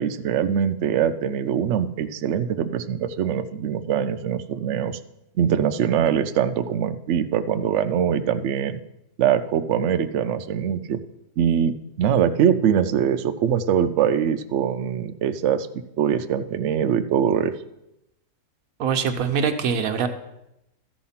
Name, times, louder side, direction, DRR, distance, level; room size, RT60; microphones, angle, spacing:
voice 1, 0.0-5.0 5.4-8.8 9.2-11.0 11.4-15.7 16.0-17.5, right 8 dB, 85° right, 9 dB, 0.6 m, -23 dB
voice 2, 18.8-20.1, right 6 dB, 60° right, 6 dB, 1.2 m, -23 dB
13.0 x 5.0 x 5.7 m, 0.86 s
omnidirectional pair, 1.8 m